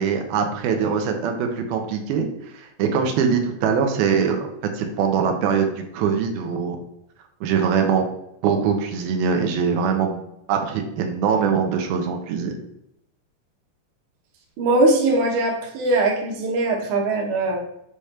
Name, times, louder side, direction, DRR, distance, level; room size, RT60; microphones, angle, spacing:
voice 1, 0.0-2.3 2.5-4.4 4.7-6.8 7.4-8.1 8.4-10.2 10.5-12.5, right 6 dB, 85° right, 4 dB, 2.8 m, -22 dB
voice 2, 14.6-17.6, right 2 dB, 65° right, 1 dB, 2.5 m, -21 dB
6.9 x 5.0 x 4.3 m, 0.79 s
omnidirectional pair, 4.2 m